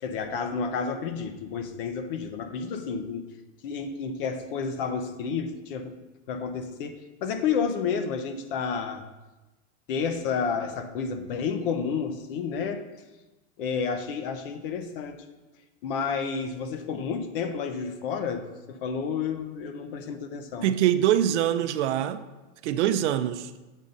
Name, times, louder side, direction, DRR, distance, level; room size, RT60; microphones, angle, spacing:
voice 1, 0.0-3.2 3.6-5.9 6.3-9.0 9.9-12.8 13.6-15.2 15.8-20.7, left 6 dB, 50° left, 0.7 m, -30 dB
voice 2, 20.6-22.2 22.6-23.5, right 11 dB, 75° right, 0.6 m, -24 dB
7.3 x 3.8 x 5.3 m
supercardioid pair, 175°, 35 cm